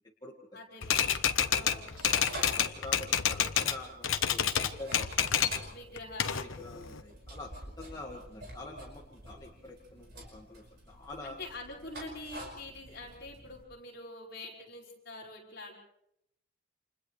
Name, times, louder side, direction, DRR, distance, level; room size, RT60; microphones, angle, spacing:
voice 1, 0.5-2.0 5.7-6.6 7.8-8.2 11.2-15.7, left 2 dB, 50° left, -3 dB, 5.7 m, -46 dB
Typewriter, 0.8-3.8 4.0-5.6 6.0-7.0, left 8 dB, 80° left, 1.1 m, -29 dB
sound 1, 0.9-13.6, right 1 dB, 50° right, 5.6 m, -48 dB
voice 2, 1.4-1.9 2.3-5.7 6.6-11.4, left 2 dB, 20° left, -2 dB, 1.9 m, -46 dB
29.5 x 27.5 x 3.3 m, 0.79 s
head